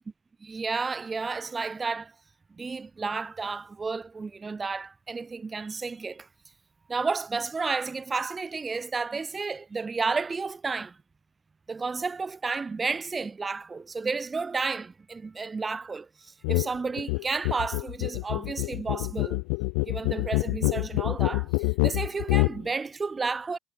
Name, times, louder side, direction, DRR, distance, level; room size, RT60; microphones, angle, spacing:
voice 1, 0.4-2.1 2.5-6.3 6.9-11.0 11.7-19.4 19.8-23.6, right 4 dB, 20° right, 6.4 m, -32 dB
sound 1, 16.4-16.7 17.0-22.6, left 40 dB or more, 85° left, 1.5 m, -26 dB
cardioid pair, 135°, 0 cm